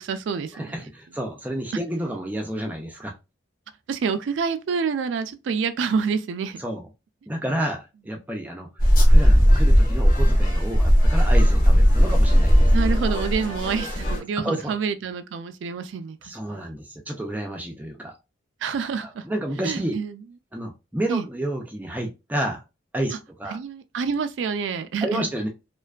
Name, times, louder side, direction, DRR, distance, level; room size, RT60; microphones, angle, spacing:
voice 1, 0.0-0.7 3.9-6.6 12.7-16.2 18.6-19.2 19.6-20.1 21.1-21.2 23.5-25.2, right 5 dB, 80° right, 0.3 m, -27 dB
voice 2, 0.5-3.1 6.6-6.9 7.3-12.7 14.4-14.8 16.2-18.2 19.0-20.0 20.5-22.6 22.9-23.1 23.4-23.6 25.0-25.5, right 1 dB, 10° right, 0.4 m, -30 dB
sound 1, 8.8-14.2, equal, 50° left, 0.8 m, -17 dB
2.5 x 2.2 x 2.3 m
head